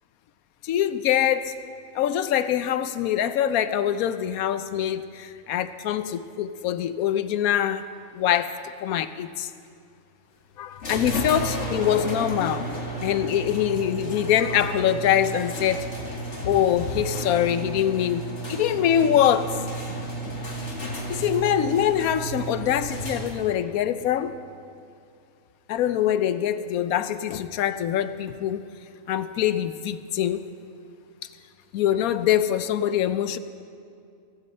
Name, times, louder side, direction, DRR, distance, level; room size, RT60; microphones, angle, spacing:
voice 1, 0.6-1.5 1.9-7.8 8.1-8.5 8.8-9.5 10.6-12.7 13.0-15.9 16.4-19.6 21.1-24.3 25.7-28.6 29.1-30.4 31.7-33.4, left 10 dB, 80° left, 12 dB, 1.1 m, -24 dB
sound 1, 10.8-23.6, right 1 dB, 55° left, 2.3 m, -33 dB
16.5 x 15.5 x 4.3 m, 2.4 s
omnidirectional pair, 1.5 m